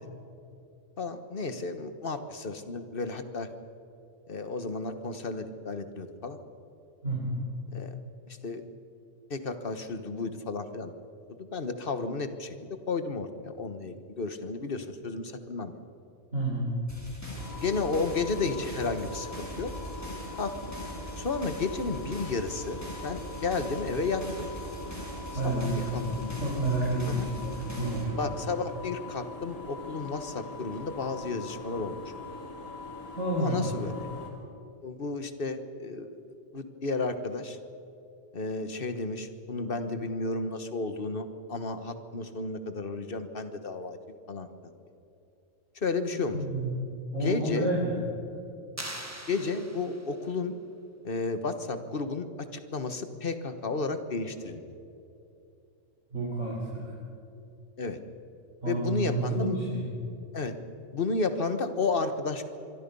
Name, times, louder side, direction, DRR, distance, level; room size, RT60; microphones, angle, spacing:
voice 1, 1.0-3.5 4.3-6.4 7.7-7.9 8.3-8.6 9.3-10.9 11.4-12.5 12.9-15.7 17.6-19.7 20.4-20.5 21.2-24.5 25.4-25.7 25.9-26.3 27.1-27.3 28.2-32.0 33.4-33.9 34.8-36.2 36.5-37.6 38.3-44.0 44.3-44.5 45.8-46.4 47.2-47.7 49.3-50.5 51.0-52.3 52.5-54.6 57.8-58.0 58.7-59.6 60.3-60.5 60.9-62.4, left 3 dB, 45° left, 9 dB, 1.5 m, -32 dB
voice 2, 7.0-7.4 16.3-16.7 25.3-28.3 33.1-33.8 46.3-46.8 47.1-48.0 56.1-56.8 58.6-59.8, right 1 dB, 65° right, -4 dB, 4.2 m, -30 dB
sound 1, 16.9-28.0, right 2 dB, 10° left, 4.9 m, -42 dB
sound 2, 17.4-34.3, left 3 dB, 80° left, 3.3 m, -42 dB
sound 3, 48.8-50.3, right 1 dB, 10° right, 1.5 m, -41 dB
25.5 x 23.5 x 5.5 m, 2.7 s
omnidirectional pair, 1.3 m